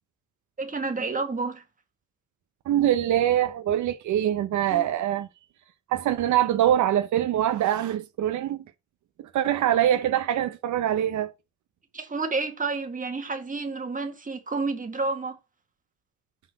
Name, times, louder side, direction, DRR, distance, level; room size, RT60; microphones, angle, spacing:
voice 1, 0.6-1.6 4.7-4.8 11.9-15.4, right 3 dB, 25° right, 1.9 m, -30 dB
voice 2, 2.7-5.3 5.9-8.6 9.3-11.3, right 11 dB, 75° right, 0.9 m, -24 dB
5.9 x 4.4 x 6.0 m
cardioid pair, 90°, 30 cm